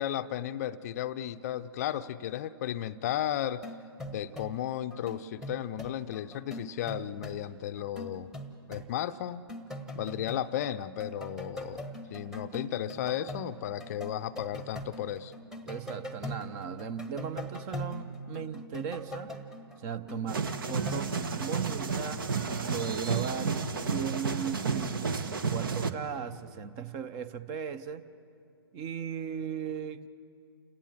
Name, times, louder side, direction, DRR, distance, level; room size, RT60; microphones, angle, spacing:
voice 1, 0.0-3.6 4.1-8.3 8.7-9.5 9.9-15.3, left 11 dB, 40° left, 12 dB, 0.6 m, -34 dB
sound 1, 3.6-4.6 4.9-7.4 7.8-8.9 9.3-10.7 11.0-21.5, equal, 5° right, 1.3 m, -42 dB
voice 2, 15.7-19.3 19.8-22.2 22.7-28.0 28.7-30.1, right 7 dB, 25° right, 14 dB, 0.8 m, -37 dB
sound 2, 20.3-25.9, right 5 dB, 60° right, 1.2 m, -31 dB
29.0 x 17.5 x 7.5 m, 2.5 s
figure-of-eight pair, 125°, 13 cm